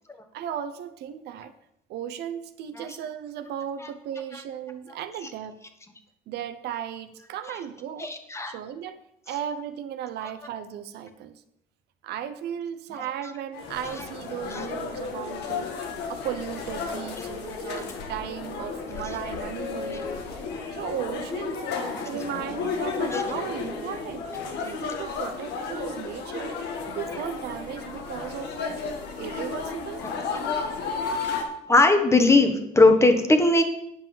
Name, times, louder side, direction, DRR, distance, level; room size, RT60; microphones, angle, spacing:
voice 1, 0.3-1.5 1.9-5.6 6.3-8.1 8.5-11.4 12.0-20.1 20.7-24.3 24.6-26.6 26.9-28.8 29.2-30.0, right 9 dB, 75° right, 10 dB, 0.8 m, -36 dB
voice 2, 8.0-8.5 12.9-13.0 14.5-14.6 17.2-17.6 19.0-19.1 20.5-20.7 21.7-22.0 23.1-23.2 24.6-24.7 30.0-30.3 31.7-33.6, left 2 dB, 15° left, 7 dB, 1.3 m, -20 dB
sound 1, 13.5-31.4, left 5 dB, 80° left, 1.8 m, -33 dB
9.4 x 5.4 x 7.4 m, 0.80 s
cardioid pair, 110°, 17 cm